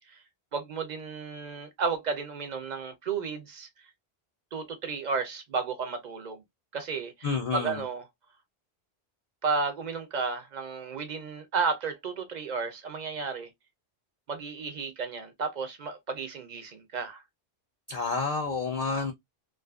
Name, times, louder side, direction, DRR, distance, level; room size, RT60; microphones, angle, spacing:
voice 1, 0.5-3.7 4.5-6.4 6.7-8.1 9.4-13.5 14.3-17.2, right 5 dB, 55° right, 0.6 m, -33 dB
voice 2, 7.2-7.8 17.9-19.1, left 4 dB, 50° left, 0.5 m, -29 dB
2.4 x 2.4 x 2.2 m
omnidirectional pair, 1.0 m